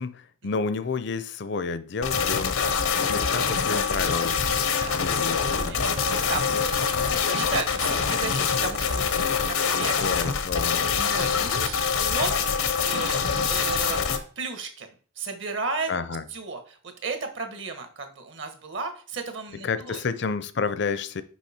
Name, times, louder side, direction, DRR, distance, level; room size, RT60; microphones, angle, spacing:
voice 1, 0.0-5.8 9.8-10.8 15.9-16.2 19.6-21.2, left 4 dB, 55° left, 0.5 m, -31 dB
sound 1, 2.0-14.2, left 6 dB, 85° left, 0.8 m, -25 dB
voice 2, 4.7-5.1 5.6-10.2 11.0-12.4 12.8-14.9 15.2-15.9 16.3-20.0, right 4 dB, 60° right, 1.2 m, -34 dB
6.3 x 5.2 x 4.3 m
head